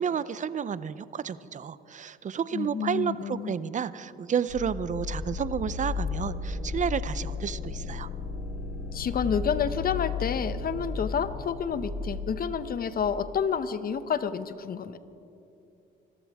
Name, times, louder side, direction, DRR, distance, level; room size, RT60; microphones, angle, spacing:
voice 1, 0.0-8.1, right 7 dB, 40° right, 16 dB, 0.6 m, -31 dB
voice 2, 2.5-3.5 8.9-15.0, left 7 dB, 50° left, 12 dB, 0.8 m, -29 dB
sound 1, 4.5-13.2, left 4 dB, 80° left, 3.4 m, -34 dB
26.0 x 14.5 x 3.6 m, 2.7 s
cardioid pair, 90°, 20 cm